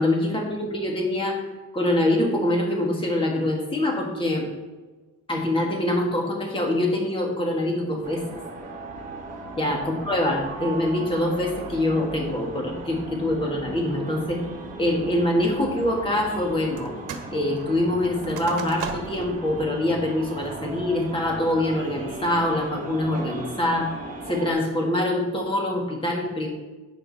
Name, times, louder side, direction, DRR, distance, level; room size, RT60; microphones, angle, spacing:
voice 1, 0.0-1.4 1.7-4.5 5.3-8.2 9.5-14.4 14.8-16.9 17.3-23.9 24.3-26.5, left 1 dB, 15° left, 0 dB, 2.1 m, -24 dB
sound 1, 8.0-24.5, right 2 dB, 25° right, 1.6 m, -37 dB
sound 2, 16.8-17.3 17.6-19.3 19.8-19.9 20.4-20.8 21.3-21.7, right 7 dB, 90° right, 1.5 m, -37 dB
11.5 x 8.5 x 4.3 m, 1.2 s
cardioid pair, 175°, 30 cm